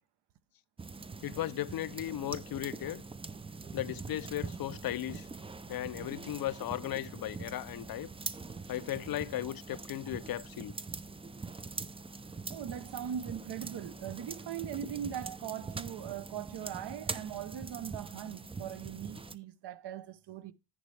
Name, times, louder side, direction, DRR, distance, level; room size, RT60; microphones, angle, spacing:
sound 1, 0.8-19.3, right 4 dB, 15° right, 0.4 m, -43 dB
voice 1, 1.2-3.0 3.7-5.3 5.7-8.1 8.7-10.7, left 13 dB, 55° left, 0.5 m, -36 dB
voice 2, 12.5-20.5, right 10 dB, 65° right, 0.9 m, -40 dB
10.5 x 8.5 x 3.3 m
cardioid pair, 120°, 44 cm